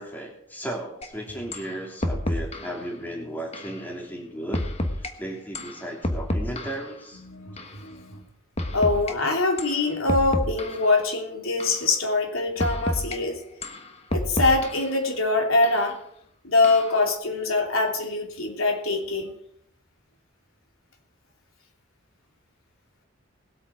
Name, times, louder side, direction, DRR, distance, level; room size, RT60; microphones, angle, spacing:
voice 1, 0.0-4.6 5.0-7.2, right 1 dB, 10° left, -1 dB, 3.0 m, -35 dB
sound 1, 1.0-1.1 1.5-1.7 2.0-2.8 3.5-3.8 4.5-5.1 5.5-6.9 7.6-7.8 8.6-9.1 9.6-9.8 10.1-10.9 11.6-11.9 12.6-13.2 13.6-14.9 15.6-15.8 16.6-17.0, left 1 dB, 30° left, 1.4 m, -29 dB
voice 2, 7.2-8.2 8.7-13.4 14.1-16.0 16.4-19.3, left 3 dB, 90° left, 2 dB, 3.2 m, -24 dB
20.0 x 8.5 x 4.8 m, 0.72 s
head